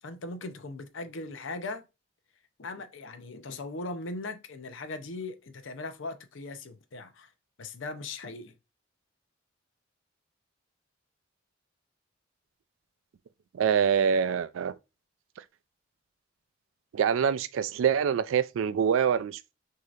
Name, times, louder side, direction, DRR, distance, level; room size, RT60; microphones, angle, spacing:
voice 1, 0.0-1.8 2.6-7.3 7.6-8.5, left 3 dB, 70° left, 0.6 m, -39 dB
voice 2, 13.5-14.7 16.9-19.4, right 7 dB, 80° right, 0.3 m, -25 dB
6.2 x 2.8 x 2.4 m
head